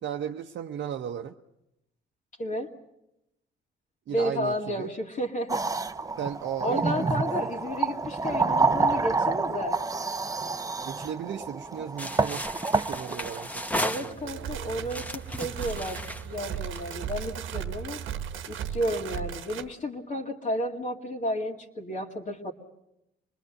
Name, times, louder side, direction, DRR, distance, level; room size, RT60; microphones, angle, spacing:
voice 1, 0.0-1.3 4.1-4.9 6.2-7.5 10.8-15.1, right 9 dB, 65° right, 3 dB, 0.9 m, -36 dB
voice 2, 4.1-5.6 6.6-9.8 13.8-18.0 18.5-22.5, equal, 40° left, 0 dB, 2.3 m, -32 dB
sound 1, 5.5-13.7, right 3 dB, 15° right, 0.8 m, -28 dB
sound 2, 12.0-14.5 14.9-17.1, equal, 5° left, 1.2 m, -35 dB
sound 3, 14.1-19.7, right 9 dB, 80° right, 1.2 m, -36 dB
26.0 x 20.5 x 7.8 m, 0.87 s
cardioid pair, 90°, 20 cm